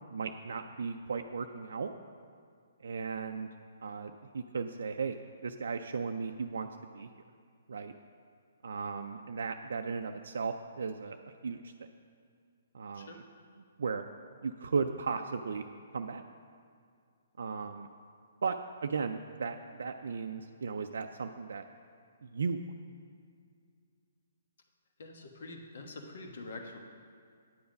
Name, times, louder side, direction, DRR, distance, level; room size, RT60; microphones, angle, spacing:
voice 1, 0.1-1.9 2.8-3.5 3.8-6.7 6.9-7.1 7.7-7.9 8.6-11.2 11.4-11.7 12.7-13.2 13.8-14.0 14.4-15.6 15.9-16.2 17.4-17.9 18.4-21.6 22.2-22.6, right 5 dB, 75° right, 5 dB, 0.4 m, -36 dB
voice 2, 25.0-26.8, left 2 dB, 65° left, 3 dB, 1.2 m, -45 dB
9.3 x 7.1 x 5.2 m, 2.3 s
hypercardioid pair, 145°, 0 cm